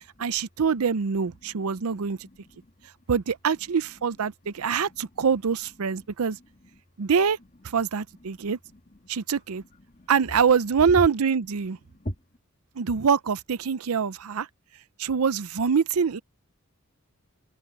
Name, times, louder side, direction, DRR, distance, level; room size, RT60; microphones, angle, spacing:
voice 1, 0.0-2.2 3.1-6.4 7.0-7.4 7.6-8.6 9.1-9.6 10.1-11.8 12.8-14.5 15.0-16.2, right 6 dB, 85° right, 0.6 m, -24 dB
voice 2, 0.7-3.0 3.5-6.8 7.4-9.1 9.6-10.1 10.8-11.1 11.4-12.3, equal, 35° left, 2.1 m, -43 dB
head